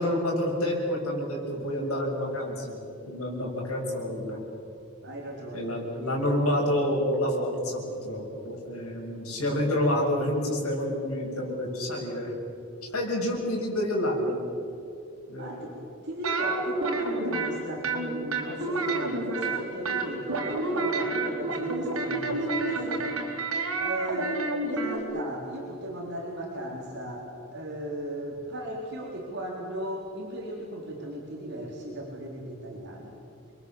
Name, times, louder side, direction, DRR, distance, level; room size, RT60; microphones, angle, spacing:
voice 1, 0.0-2.8 3.1-4.4 5.5-12.3 12.9-14.4 15.3-15.6, left 1 dB, 90° left, 0 dB, 7.0 m, -28 dB
voice 2, 5.0-6.2 15.4-23.1 23.8-33.2, right 1 dB, 50° right, -3 dB, 3.9 m, -36 dB
sound 1, 16.2-17.5 17.8-19.6 19.9-25.0, right 3 dB, 80° right, 4.3 m, -29 dB
29.0 x 22.5 x 7.3 m, 2.7 s
head